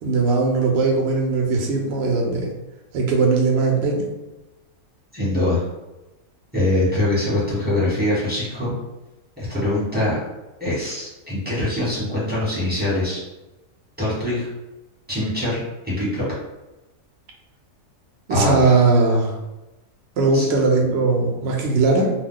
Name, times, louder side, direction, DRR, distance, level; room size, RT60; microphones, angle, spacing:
voice 1, 0.0-2.5 2.9-4.1 18.3-19.4 20.2-22.1, right 3 dB, 60° right, 0 dB, 0.7 m, -19 dB
voice 2, 5.1-5.6 6.5-8.7 9.4-10.2 10.6-13.2 14.0-14.5 15.1-15.6 16.0-16.2 18.3-18.7 20.3-20.5, left 1 dB, 10° right, -9 dB, 1.0 m, -23 dB
2.4 x 2.1 x 3.7 m, 1.0 s
omnidirectional pair, 1.5 m